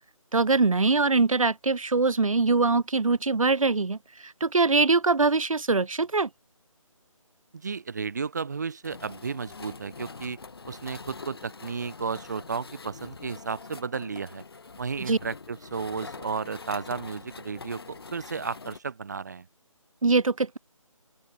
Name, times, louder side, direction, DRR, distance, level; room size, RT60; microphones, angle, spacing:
voice 1, 0.3-6.3 15.0-15.2 20.0-20.6, right 3 dB, 75° right, 1.9 m, -23 dB
voice 2, 7.5-10.4 10.7-14.4 14.8-19.5, right 5 dB, 30° right, 3.2 m, -33 dB
sound 1, 8.8-18.8, left 4 dB, 45° left, 5.0 m, -44 dB
open air
figure-of-eight pair, 180°, 18 cm